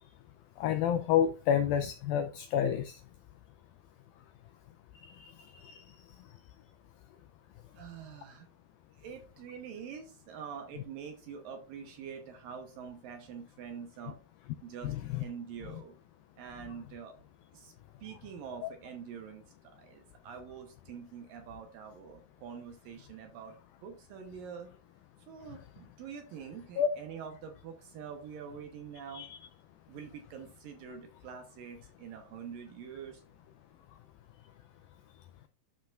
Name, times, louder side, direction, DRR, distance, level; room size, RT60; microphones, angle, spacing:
voice 1, 0.6-3.0 5.0-5.8 15.1-15.2 18.6-18.7 26.8-26.9 29.1-29.5, left 9 dB, 85° left, 2.1 m, -30 dB
voice 2, 7.7-8.5 8.9-14.2 14.6-14.9 15.2-16.0 16.4-17.2 17.5-17.7 18.0-23.6 23.8-24.7 25.3-29.2 29.9-33.2, right 7 dB, 70° right, 2.3 m, -45 dB
12.5 x 5.8 x 2.5 m
omnidirectional pair, 4.8 m